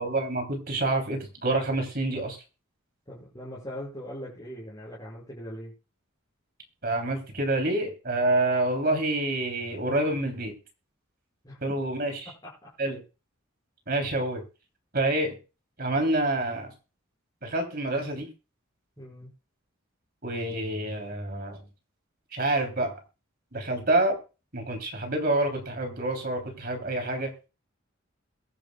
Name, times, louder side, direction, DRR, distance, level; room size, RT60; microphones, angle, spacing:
voice 1, 0.0-2.4 6.8-10.5 11.6-12.3 12.8-13.0 13.9-14.4 14.9-15.3 15.8-16.7 17.4-18.3 20.2-21.6 22.3-23.0 23.5-24.2 24.5-27.3, right 2 dB, 45° right, 4 dB, 3.5 m, -27 dB
voice 2, 3.1-5.7 11.4-11.6 12.4-12.7 19.0-19.3, equal, 20° left, -6 dB, 6.0 m, -40 dB
22.0 x 10.5 x 2.4 m, 0.32 s
head